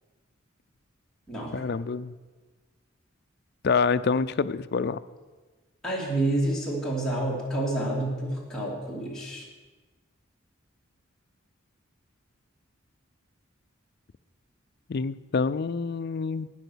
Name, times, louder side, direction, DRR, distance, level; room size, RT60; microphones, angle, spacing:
voice 1, 1.5-2.1 3.6-5.0 14.9-16.5, left 5 dB, 50° left, 13 dB, 0.4 m, -26 dB
voice 2, 5.8-9.4, right 1 dB, 5° left, -5 dB, 2.7 m, -29 dB
12.0 x 9.1 x 6.2 m, 1.3 s
head